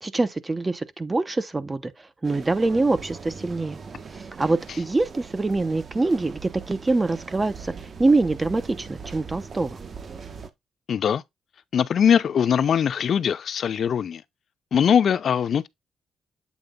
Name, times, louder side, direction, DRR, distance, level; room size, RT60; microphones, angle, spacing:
voice 1, 0.0-3.8 4.1-9.8, right 3 dB, 25° right, 0.8 m, -25 dB
sound 1, 2.2-10.5, right 5 dB, 50° right, 1.2 m, -40 dB
voice 2, 10.9-11.2 11.7-14.2 14.7-15.7, left 8 dB, 65° left, 0.6 m, -21 dB
8.3 x 3.3 x 3.8 m
cardioid pair, 65°, 0 cm